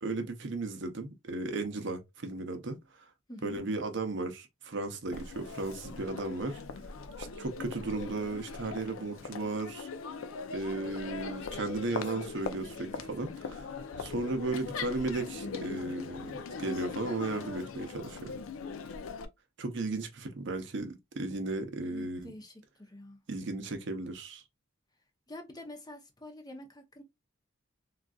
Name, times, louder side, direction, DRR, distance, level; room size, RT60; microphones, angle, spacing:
voice 1, 0.0-3.0 3.4-6.6 7.2-9.9 10.5-13.7 14.0-18.3 19.6-22.3 23.3-24.4, right 2 dB, 60° right, 0.6 m, -35 dB
voice 2, 3.3-3.6 21.8-22.5 22.8-23.2 25.3-27.0, left 1 dB, 20° left, 0.6 m, -47 dB
Crowd, 5.1-19.2, left 5 dB, 75° left, 0.4 m, -41 dB
3.8 x 2.4 x 2.3 m
head